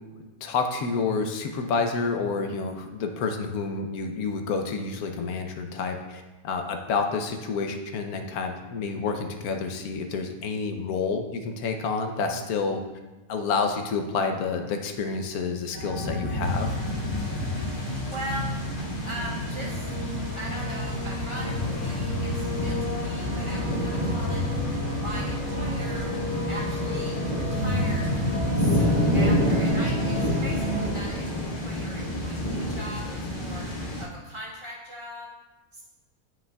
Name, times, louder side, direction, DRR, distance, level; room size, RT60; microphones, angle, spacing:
voice 1, 0.1-12.8 13.3-16.7, left 4 dB, 85° left, 5 dB, 1.2 m, -29 dB
sound 1, 15.7-30.9, left 1 dB, 55° right, 1.2 m, -30 dB
sound 2, 16.4-34.0, equal, 40° left, 1.2 m, -30 dB
voice 2, 18.1-18.6 19.0-19.9 20.4-24.5 25.0-26.1 26.5-28.1 28.5-33.7 34.0-35.3 35.7-35.8, equal, 35° right, -6 dB, 1.6 m, -40 dB
9.9 x 5.7 x 2.3 m, 1.1 s
omnidirectional pair, 1.5 m